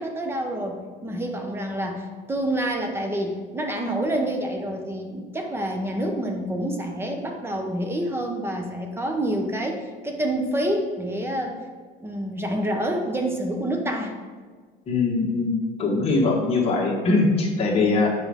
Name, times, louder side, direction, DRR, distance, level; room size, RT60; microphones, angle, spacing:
voice 1, 0.0-11.6 12.0-14.2, right 1 dB, 15° right, 3 dB, 0.7 m, -27 dB
voice 2, 14.9-18.1, left 3 dB, 35° left, -1 dB, 1.4 m, -22 dB
7.0 x 5.1 x 3.5 m, 1.5 s
cardioid pair, 135°, 18 cm